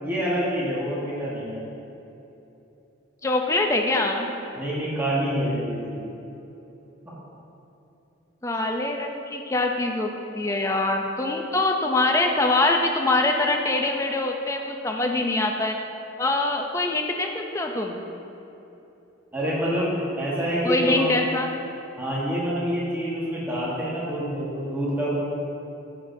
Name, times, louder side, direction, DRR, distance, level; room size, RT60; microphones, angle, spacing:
voice 1, 0.0-1.6 4.6-6.0 7.0-7.1 19.3-21.2 22.0-25.2, equal, 10° right, -7 dB, 1.2 m, -27 dB
voice 2, 3.2-4.3 8.4-15.8 16.2-18.0 20.6-21.5, left 2 dB, 15° left, 3 dB, 0.4 m, -24 dB
9.4 x 6.6 x 2.6 m, 3.0 s
head